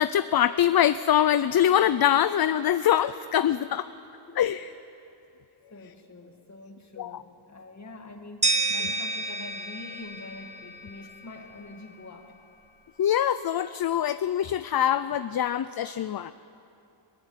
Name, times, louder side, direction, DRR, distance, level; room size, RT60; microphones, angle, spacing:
voice 1, 0.0-3.9 4.4-4.7 7.0-7.2 13.0-16.3, left 10 dB, 50° left, 13 dB, 0.5 m, -24 dB
voice 2, 4.3-4.7 5.7-12.3, left 2 dB, 35° left, 3 dB, 2.3 m, -45 dB
sound 1, 8.4-11.3, right 2 dB, 15° right, 0.9 m, -30 dB
22.0 x 20.0 x 9.8 m, 2.8 s
wide cardioid pair, 175°, 49 cm